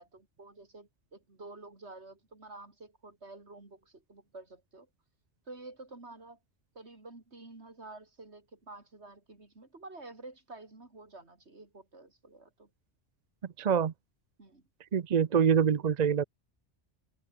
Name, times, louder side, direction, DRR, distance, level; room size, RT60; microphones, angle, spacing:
voice 1, 0.0-4.9 5.5-6.4 6.7-12.7 14.4-14.7, right 2 dB, 70° right, 4.1 m, -50 dB
voice 2, 13.6-13.9 14.9-16.2, right 7 dB, 45° right, 0.7 m, -25 dB
omnidirectional pair, 1.2 m